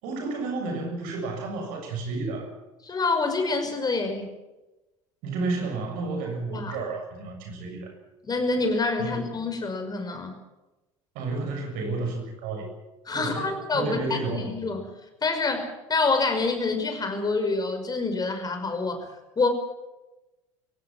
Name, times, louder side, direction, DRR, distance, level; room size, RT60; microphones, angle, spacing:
voice 1, 0.0-2.5 5.2-7.9 9.0-9.2 11.2-12.7 13.1-14.5, right 3 dB, 55° right, 4 dB, 7.1 m, -31 dB
voice 2, 2.8-4.3 6.5-6.8 8.2-10.4 13.1-14.9 15.2-19.1 19.4-19.5, left 3 dB, 25° left, 6 dB, 5.7 m, -27 dB
23.0 x 17.5 x 7.5 m, 1.0 s
figure-of-eight pair, 65°, 17 cm